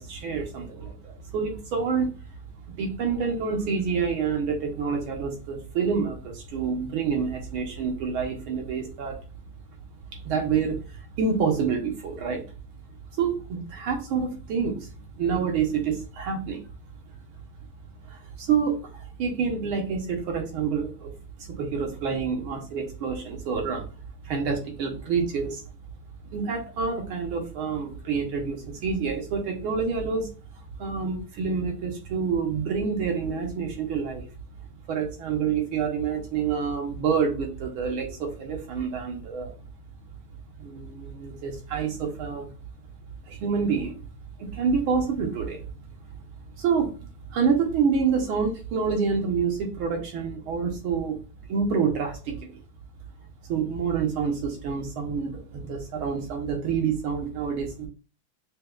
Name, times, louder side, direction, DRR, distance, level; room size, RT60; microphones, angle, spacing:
voice 1, 0.0-2.1 2.7-9.2 10.1-12.4 13.1-16.6 18.0-21.1 21.4-23.9 24.2-25.6 26.3-30.3 30.8-34.3 34.9-39.6 40.6-42.5 43.3-44.0 44.4-45.7 46.6-51.2 51.5-52.6 53.4-57.9, right 6 dB, 75° right, 1 dB, 1.8 m, -27 dB
6.6 x 2.3 x 2.3 m, 0.34 s
omnidirectional pair, 2.4 m